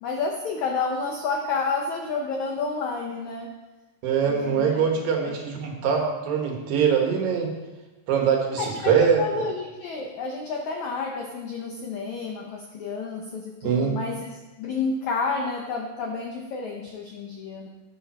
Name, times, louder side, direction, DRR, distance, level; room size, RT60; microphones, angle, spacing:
voice 1, 0.0-3.5 4.2-4.9 5.3-5.4 8.6-14.3 14.6-17.7, left 4 dB, 75° left, 1 dB, 1.7 m, -30 dB
voice 2, 4.0-7.5 8.1-9.4 13.6-14.0, right 6 dB, 65° right, 2 dB, 2.8 m, -23 dB
12.0 x 9.2 x 4.3 m, 1.1 s
omnidirectional pair, 4.7 m